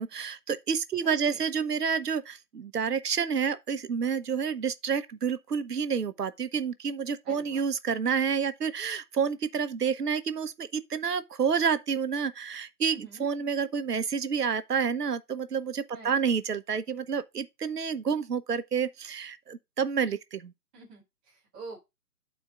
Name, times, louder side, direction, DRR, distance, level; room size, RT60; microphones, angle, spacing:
voice 1, 0.0-20.5, right 6 dB, 90° right, 0.9 m, -29 dB
voice 2, 1.0-1.5 7.2-7.7 12.8-13.2 15.9-16.3 20.7-21.8, right 3 dB, 5° right, 0.6 m, -47 dB
12.0 x 4.4 x 2.3 m
hypercardioid pair, 150°, 46 cm